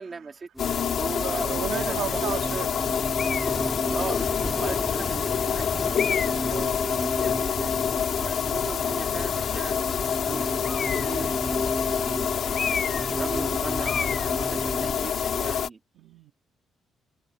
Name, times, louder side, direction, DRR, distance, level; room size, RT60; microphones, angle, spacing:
voice 1, 0.0-2.3 3.9-4.2 4.6-7.7 8.1-11.3 11.9-15.8, right 4 dB, 35° right, 2.7 m, -38 dB
sound 1, 0.6-15.7, left 8 dB, 60° left, 2.0 m, -27 dB
sound 2, 0.6-14.9, equal, 5° right, 2.3 m, -34 dB
voice 2, 1.2-2.8 6.4-6.8 16.0-16.3, right 11 dB, 80° right, 2.2 m, -34 dB
sound 3, 3.2-3.6 4.4-4.5 6.0-6.5 10.6-11.2 12.5-13.1 13.4-13.6 13.8-14.3, left 6 dB, 45° left, 0.8 m, -31 dB
cardioid pair, 90°, 0 cm